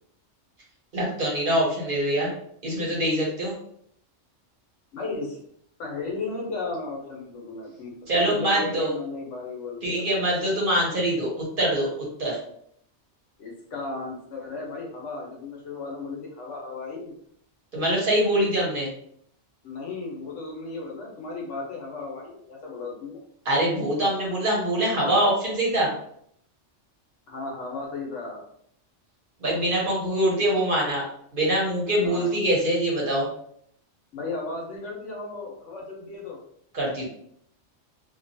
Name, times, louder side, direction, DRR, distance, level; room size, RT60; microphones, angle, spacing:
voice 1, 0.9-2.3 2.6-3.6 8.1-8.9 9.8-11.9 12.2-12.4 17.7-18.9 23.4-25.9 29.4-31.0 31.3-33.3 36.7-37.1, right 1 dB, 50° right, -4 dB, 0.9 m, -24 dB
voice 2, 4.9-5.4 5.8-10.4 13.4-17.1 19.6-23.2 27.3-28.4 32.0-32.3 34.1-36.4, left 3 dB, 75° left, -1 dB, 1.1 m, -35 dB
2.7 x 2.2 x 2.6 m, 0.67 s
omnidirectional pair, 1.3 m